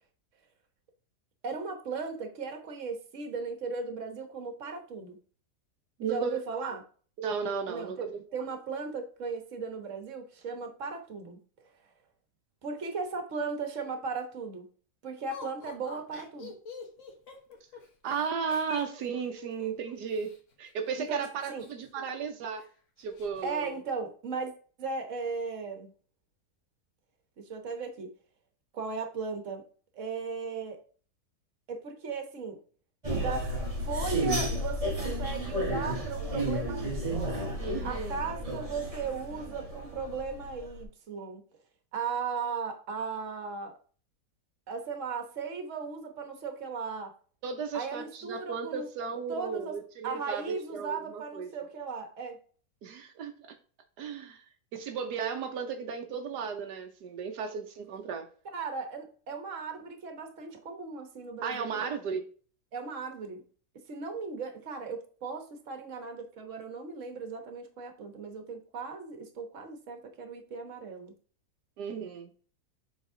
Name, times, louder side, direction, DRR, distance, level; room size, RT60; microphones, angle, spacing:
voice 1, 1.4-5.2 6.0-6.8 7.7-11.4 12.6-14.6 15.0-16.5 21.0-21.6 23.4-24.5 24.8-25.9 27.4-28.1 28.7-29.6 29.9-30.8 31.7-32.6 33.1-33.5 33.9-37.3 37.8-41.4 41.9-43.7 44.7-47.1 47.7-48.9 49.3-49.8 50.0-52.4 58.5-61.9 62.7-63.4 63.9-71.1, right 5 dB, 50° right, 6 dB, 1.4 m, -37 dB
voice 2, 6.0-6.8 7.2-8.2 18.0-20.3 20.6-22.6 23.0-23.8 37.6-38.2 47.4-51.5 52.8-53.5 54.0-54.4 54.7-58.3 61.4-62.2 71.8-72.3, right 6 dB, 80° right, 5 dB, 1.3 m, -35 dB
Laughter, 15.3-20.4 21.4-22.3 22.6-22.7 23.0-23.5, left 5 dB, 50° left, 1.5 m, -46 dB
sound 1, 33.0-40.8, equal, 25° right, 1.2 m, -33 dB
7.2 x 4.1 x 3.7 m, 0.41 s
omnidirectional pair, 1.7 m